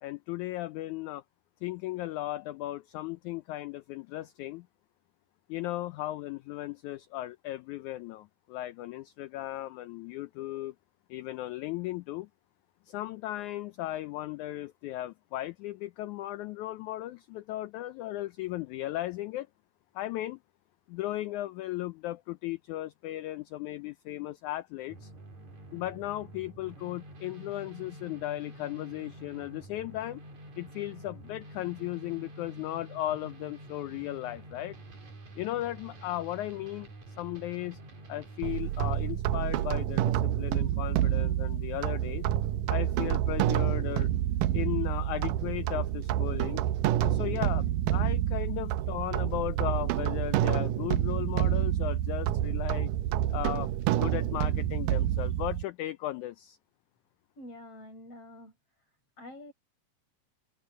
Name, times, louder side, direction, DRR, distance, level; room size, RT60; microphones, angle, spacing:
voice 1, 0.0-1.2 1.6-4.7 5.5-10.7 11.1-12.3 12.9-19.5 20.0-20.4 20.9-25.1 25.7-30.2 30.6-34.8 35.4-36.9 37.2-37.8 38.1-42.3 42.7-44.1 44.5-46.6 47.0-52.9 53.3-56.6, left 15 dB, 75° left, 1.8 m, -36 dB
sound 1, 24.9-39.1, right 1 dB, 55° right, 5.2 m, -48 dB
sound 2, 38.4-55.6, right 12 dB, 80° right, 2.3 m, -28 dB
voice 2, 57.4-58.5 59.2-59.5, left 1 dB, 45° left, 8.0 m, -46 dB
omnidirectional pair, 3.9 m